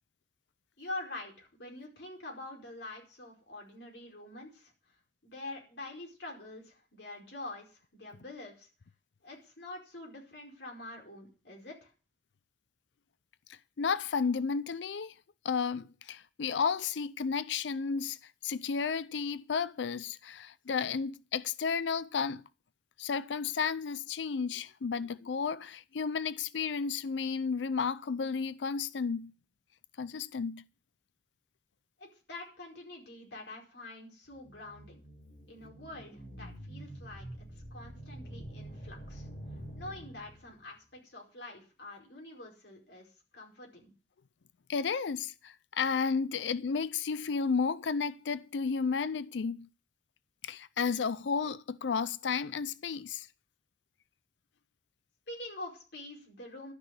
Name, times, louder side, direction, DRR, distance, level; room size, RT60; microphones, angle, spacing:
voice 1, 0.8-4.7 5.2-8.7 9.2-11.9 32.0-35.0 35.5-39.3 39.8-43.9 55.3-56.7, left 2 dB, 70° left, 4.8 m, -46 dB
voice 2, 13.8-15.1 15.4-22.4 23.0-29.3 30.0-30.6 44.7-49.7 50.4-53.3, left 5 dB, 90° left, 0.5 m, -32 dB
sound 1, 34.3-40.6, right 1 dB, 50° left, 5.7 m, -47 dB
12.0 x 6.0 x 9.4 m
head